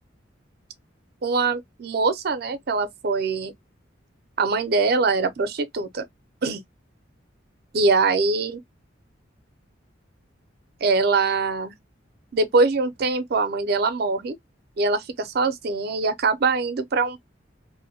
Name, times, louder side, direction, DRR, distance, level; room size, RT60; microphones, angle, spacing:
voice 1, 1.2-3.5 4.4-6.0 6.4-6.6 7.7-8.6 10.8-11.8 12.3-14.4 14.8-17.2, right 3 dB, 55° right, 0.5 m, -23 dB
2.5 x 2.1 x 2.7 m
head